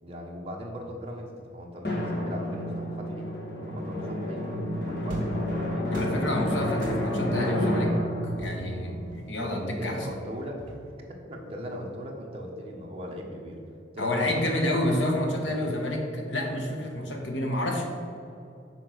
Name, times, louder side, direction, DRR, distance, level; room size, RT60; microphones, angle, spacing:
voice 1, 0.0-3.3 3.6-4.4 4.8-6.9 9.7-10.6 11.1-13.6 13.9-14.6 15.3-15.5, equal, 30° right, -1 dB, 1.1 m, -38 dB
Drum, 1.8-10.1, left 1 dB, 55° left, 1.4 m, -30 dB
sound 1, 5.1-5.5 5.9-6.3 6.8-7.3 8.4-9.5 10.1-11.1, right 1 dB, 45° right, 1.9 m, -43 dB
voice 2, 5.9-7.9 8.4-10.0 14.0-17.8, left 1 dB, 85° left, 1 dB, 1.3 m, -29 dB
6.2 x 4.6 x 6.4 m, 2.7 s
head